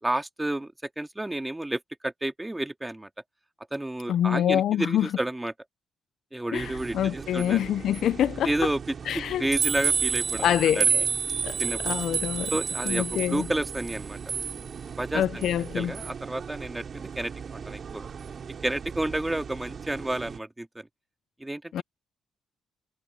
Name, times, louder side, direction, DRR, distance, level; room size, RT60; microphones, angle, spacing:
voice 1, 0.0-3.1 3.7-5.5 6.3-7.7 8.4-8.8 9.1-10.9 11.6-11.8 12.5-14.2 15.0-18.1 18.6-20.9 21.4-21.8, right 1 dB, 10° right, 2.1 m, -31 dB
voice 2, 4.1-5.1 6.5-8.5 9.1-9.5 10.4-11.0 11.4-11.6 11.8-12.5 12.9-13.5 15.1-15.9 21.7-21.8, left 10 dB, 70° left, 0.5 m, -26 dB
sound 1, 6.5-20.4, right 6 dB, 50° right, 5.5 m, -32 dB
cardioid pair, 90°, 0 cm